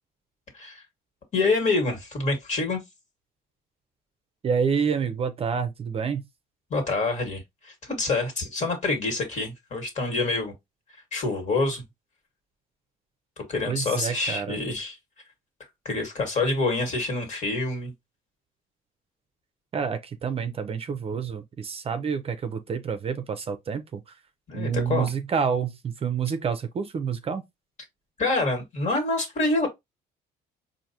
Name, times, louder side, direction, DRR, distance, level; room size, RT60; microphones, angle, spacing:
voice 1, 1.3-2.8 6.7-10.5 11.1-11.8 13.4-15.0 15.9-17.9 24.5-25.1 28.2-29.7, left 3 dB, 45° left, 1.8 m, -26 dB
voice 2, 4.4-6.2 13.7-14.6 19.7-24.2 24.5-27.4, right 6 dB, 35° right, 0.5 m, -28 dB
4.6 x 2.6 x 2.8 m
cardioid pair, 110°, 17 cm